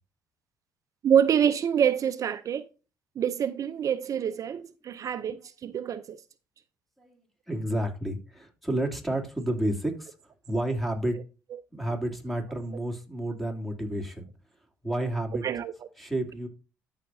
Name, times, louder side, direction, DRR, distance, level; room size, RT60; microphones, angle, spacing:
voice 1, 1.0-2.7 3.2-6.2 15.4-15.7, right 8 dB, 50° right, 0.5 m, -26 dB
voice 2, 7.5-10.1 10.5-11.2 11.7-14.3 14.8-15.4 16.0-16.5, right 1 dB, ahead, 2.7 m, -30 dB
13.0 x 5.7 x 2.7 m
supercardioid pair, 65°, 7 cm